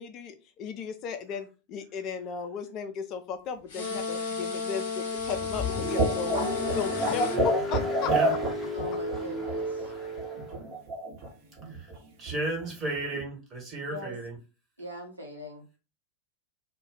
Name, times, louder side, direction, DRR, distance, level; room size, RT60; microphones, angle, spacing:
voice 1, 0.0-6.4 6.7-8.1, left 5 dB, 35° left, 7 dB, 0.4 m, -35 dB
sound 1, 3.7-7.4, left 4 dB, 50° left, 1.0 m, -33 dB
Car, 5.2-10.6, left 1 dB, 10° left, 0.8 m, -34 dB
sound 2, 5.7-9.5 9.8-9.9 10.2-11.3 11.6-12.0 12.3-12.4 12.6-12.7 13.0-13.2, right 2 dB, 45° right, 0.9 m, -29 dB
voice 2, 8.0-8.3 11.7-11.9 12.2-14.3, right 2 dB, 20° right, -1 dB, 1.3 m, -33 dB
voice 3, 8.7-9.9 13.9-14.1 14.8-15.8, equal, 80° right, -1 dB, 0.9 m, -41 dB
2.3 x 2.2 x 3.8 m, 0.32 s
figure-of-eight pair, 90°, 0 cm